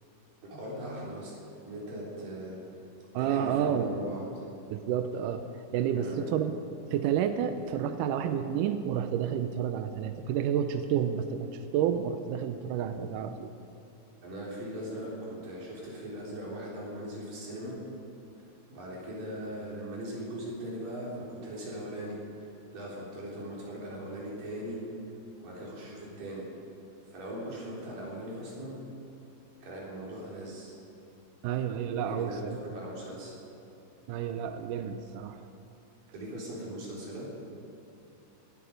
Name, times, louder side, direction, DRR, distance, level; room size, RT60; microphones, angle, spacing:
voice 1, 0.4-2.9 3.2-4.4 5.9-6.3 14.2-17.8 18.4-25.1 25.4-26.5 27.1-28.8 29.6-30.7 32.1-33.3 36.1-37.2, right 1 dB, 65° right, -5 dB, 5.2 m, -39 dB
voice 2, 3.1-3.9 4.7-5.5 5.7-6.5 6.9-11.5 11.7-13.5 31.4-32.6 34.1-35.4, right 9 dB, 80° right, 8 dB, 2.0 m, -30 dB
19.0 x 12.0 x 5.2 m, 2.8 s
omnidirectional pair, 4.3 m